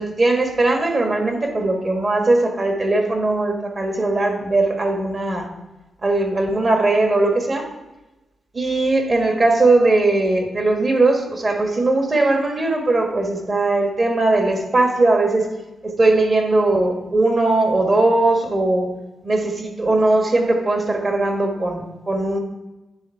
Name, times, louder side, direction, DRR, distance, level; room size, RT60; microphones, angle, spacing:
voice 1, 0.0-5.5 6.0-7.7 8.5-15.5 15.8-18.9 19.2-22.4, right 2 dB, 45° right, 3 dB, 1.5 m, -19 dB
9.6 x 3.5 x 4.5 m, 1.0 s
cardioid pair, 60°, 0 cm